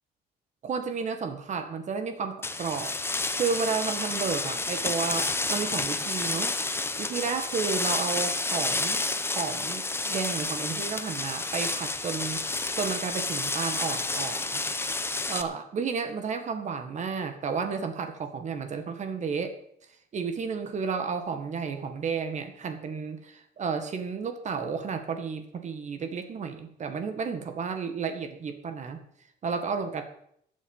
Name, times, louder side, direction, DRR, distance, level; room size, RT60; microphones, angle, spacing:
voice 1, 0.6-2.9 3.3-6.5 7.0-9.0 9.3-14.6 15.3-19.6 20.1-29.0 29.4-30.0, right 5 dB, 45° right, 7 dB, 1.8 m, -32 dB
sound 1, 2.4-15.4, left 3 dB, 15° left, 1.0 m, -30 dB
15.0 x 9.1 x 5.7 m, 0.68 s
cardioid pair, 110°, 17 cm